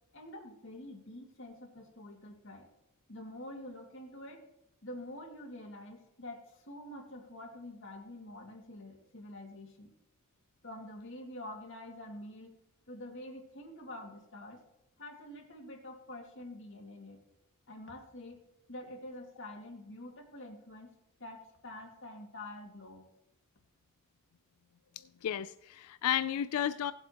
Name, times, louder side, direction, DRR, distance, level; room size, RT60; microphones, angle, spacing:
voice 1, 0.1-2.7 3.1-4.4 4.8-9.9 10.6-12.6 12.9-14.6 15.0-17.2 17.7-18.4 18.7-23.0, left 1 dB, 60° left, 1 dB, 2.2 m, -47 dB
voice 2, 25.0-26.9, left 10 dB, 85° left, 14 dB, 0.4 m, -33 dB
18.0 x 7.9 x 2.9 m, 0.87 s
head